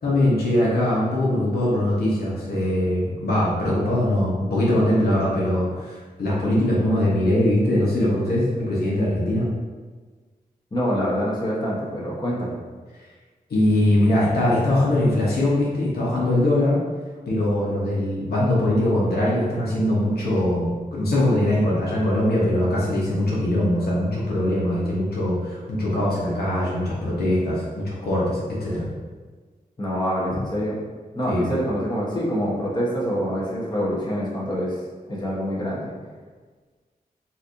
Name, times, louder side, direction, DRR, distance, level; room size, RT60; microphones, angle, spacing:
voice 1, 0.0-9.5 13.5-16.8 17.3-28.9 31.3-31.4, left 1 dB, 85° left, -7 dB, 0.9 m, -22 dB
voice 2, 10.7-12.6 29.8-30.8 31.1-35.9, equal, 30° left, -6 dB, 1.0 m, -26 dB
4.1 x 2.6 x 2.5 m, 1.4 s
wide cardioid pair, 70°, 16 cm